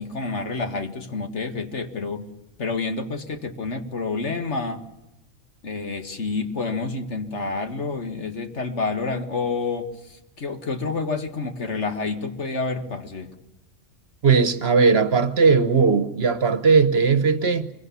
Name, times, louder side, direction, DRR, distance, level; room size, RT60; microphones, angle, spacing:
voice 1, 0.0-2.3 2.6-4.8 5.6-13.3, left 4 dB, 65° left, 2.0 m, -29 dB
voice 2, 14.2-17.7, right 5 dB, 55° right, 1.3 m, -18 dB
24.0 x 23.0 x 7.0 m
omnidirectional pair, 1.3 m